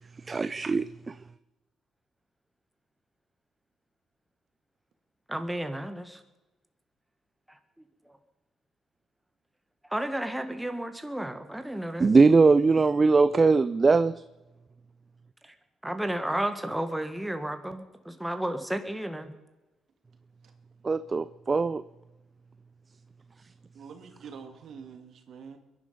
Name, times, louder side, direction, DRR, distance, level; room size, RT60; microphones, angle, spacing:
voice 1, 0.3-1.1 12.0-14.1 20.8-21.8, right 4 dB, 30° right, 0.5 m, -21 dB
voice 2, 5.3-6.2 9.9-12.1 15.8-19.3, right 1 dB, 5° right, 1.7 m, -32 dB
voice 3, 23.7-25.6, right 6 dB, 65° right, 2.2 m, -46 dB
22.0 x 11.0 x 5.4 m
cardioid pair, 90°, 0 cm